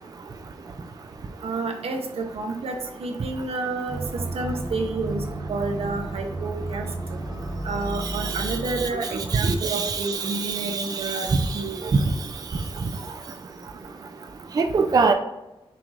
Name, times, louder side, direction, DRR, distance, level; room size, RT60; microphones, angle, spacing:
voice 1, 1.4-7.2 7.6-11.9, right 3 dB, 90° right, 3 dB, 0.8 m, -30 dB
sound 1, 3.9-8.9, right 2 dB, 15° right, 1.0 m, -32 dB
voice 2, 8.2-8.6 9.3-11.1 14.6-15.1, right 4 dB, 40° right, 5 dB, 0.3 m, -24 dB
5.9 x 3.3 x 2.4 m, 0.97 s
wide cardioid pair, 130°, 10 cm